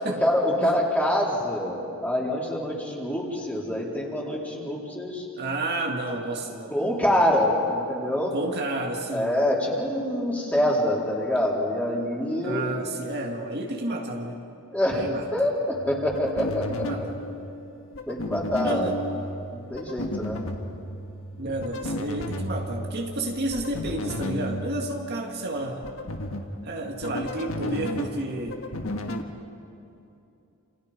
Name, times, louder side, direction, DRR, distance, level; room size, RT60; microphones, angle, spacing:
voice 1, 0.0-5.3 6.7-8.3 9.1-12.6 14.7-15.1 15.3-17.0 18.1-18.9 19.5-20.4, left 1 dB, 10° left, -4 dB, 4.0 m, -25 dB
voice 2, 5.4-6.8 8.3-9.4 12.4-14.4 14.9-15.2 16.8-17.2 18.6-19.0 21.4-25.8 26.6-28.6, right 1 dB, 50° right, 1 dB, 1.8 m, -31 dB
sound 1, 15.7-29.2, left 1 dB, 75° left, 1.6 m, -34 dB
28.0 x 28.0 x 5.2 m, 2.7 s
head